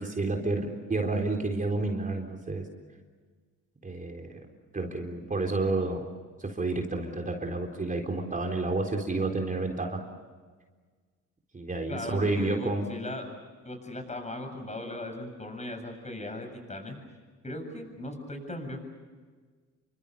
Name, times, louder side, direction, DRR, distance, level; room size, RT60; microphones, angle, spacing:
voice 1, 0.0-2.7 3.8-4.4 4.7-6.1 6.4-10.0 11.5-12.8, right 2 dB, 25° right, 2 dB, 3.9 m, -30 dB
voice 2, 11.9-13.3 13.6-17.0 17.4-18.8, left 1 dB, 25° left, 5 dB, 7.7 m, -38 dB
29.0 x 25.0 x 7.0 m, 1.5 s
cardioid pair, 90°, 30 cm